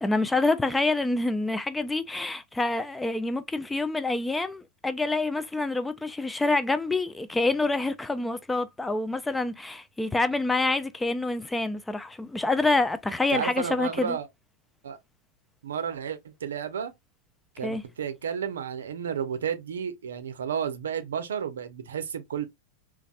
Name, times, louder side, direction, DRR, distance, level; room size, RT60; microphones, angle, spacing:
voice 1, 0.0-14.2 17.6-17.8, left 2 dB, 10° left, 0.3 m, -27 dB
voice 2, 13.3-14.3 14.8-15.0 15.6-16.9 17.6-22.4, right 7 dB, 65° right, 0.6 m, -32 dB
4.0 x 2.5 x 2.2 m
figure-of-eight pair, 90°, 0 cm